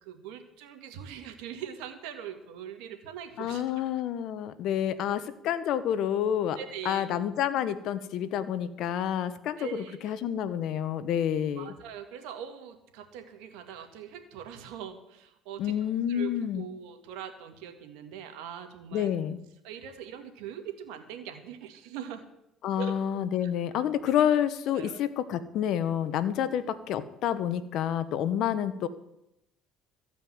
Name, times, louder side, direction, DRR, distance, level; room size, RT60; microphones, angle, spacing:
voice 1, 0.0-3.8 6.5-7.1 9.6-10.2 11.6-15.8 16.1-16.3 16.6-19.1 19.6-22.2 22.8-23.0 23.4-23.8 24.7-25.0 26.4-26.5, right 9 dB, 80° right, 6 dB, 1.8 m, -42 dB
voice 2, 3.4-6.6 6.8-11.7 15.6-16.7 18.9-19.4 22.6-28.9, left 10 dB, 65° left, 13 dB, 1.0 m, -29 dB
15.0 x 5.4 x 9.4 m, 0.85 s
supercardioid pair, 90°, 0 cm